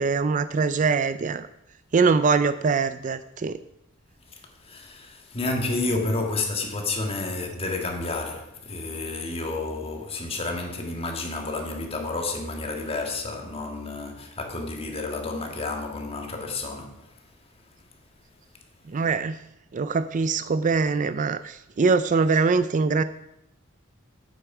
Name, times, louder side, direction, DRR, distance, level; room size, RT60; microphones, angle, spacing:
voice 1, 0.0-1.5 1.9-3.6 18.9-19.4 19.7-23.0, right 4 dB, 35° right, 0.4 m, -23 dB
voice 2, 4.6-17.1, left 2 dB, 30° left, 1.7 m, -30 dB
9.0 x 8.2 x 6.0 m
head